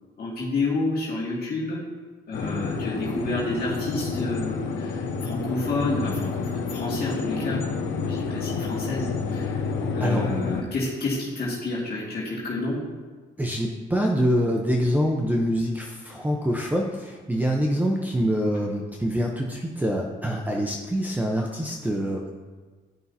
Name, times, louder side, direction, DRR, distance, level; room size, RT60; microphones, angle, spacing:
voice 1, 0.2-1.8 2.3-7.6 8.0-9.6 9.9-12.8, left 2 dB, 50° left, -6 dB, 2.1 m, -29 dB
sound 1, 2.3-10.6, left 4 dB, 70° left, 0.9 m, -29 dB
voice 2, 13.4-22.3, equal, 10° right, 0 dB, 0.8 m, -25 dB
12.0 x 5.6 x 2.8 m, 1.4 s
cardioid pair, 90°, 20 cm